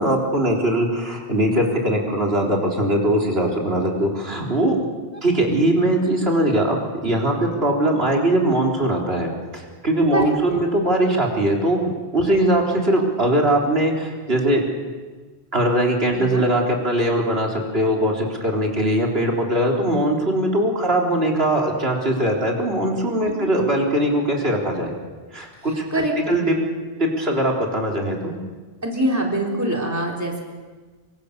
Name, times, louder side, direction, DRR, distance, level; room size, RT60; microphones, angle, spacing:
voice 1, 0.0-4.8 5.2-14.6 15.5-24.9 25.3-25.8 26.3-26.5 27.0-28.4, right 1 dB, 75° right, -1 dB, 4.1 m, -21 dB
voice 2, 10.1-10.6 12.4-12.5 16.1-16.5 23.4-23.5 25.9-26.4 28.8-30.4, right 1 dB, 15° right, -1 dB, 4.0 m, -24 dB
27.0 x 24.5 x 6.8 m, 1.3 s
omnidirectional pair, 1.1 m